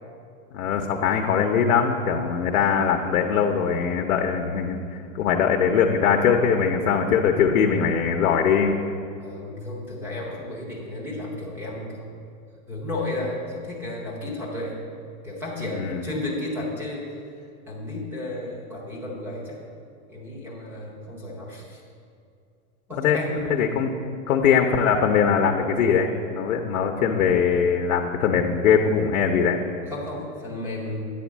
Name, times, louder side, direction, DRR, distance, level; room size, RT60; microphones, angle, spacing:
voice 1, 0.5-4.8 5.1-8.8 15.7-16.0 23.0-23.2 23.5-24.0 24.3-29.6, left 7 dB, 75° left, 2 dB, 0.8 m, -21 dB
voice 2, 9.2-12.1 12.7-14.8 15.2-17.2 17.7-19.6 20.1-21.8 22.9-23.6 29.9-31.1, left 2 dB, 5° right, -4 dB, 0.7 m, -33 dB
9.0 x 4.3 x 7.2 m, 2.4 s
supercardioid pair, 175°, 42 cm